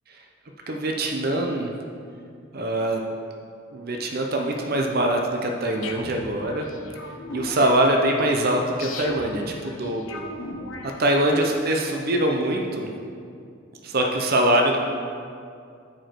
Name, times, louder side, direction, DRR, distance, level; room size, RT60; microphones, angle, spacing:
voice 1, 0.7-1.7 2.5-3.0 3.7-6.7 7.3-10.3 11.0-12.9 13.8-14.8, right 1 dB, 50° right, 2 dB, 0.7 m, -23 dB
sound 1, 5.8-11.6, left 3 dB, 70° left, 0.9 m, -38 dB
13.0 x 5.1 x 4.6 m, 2.3 s
head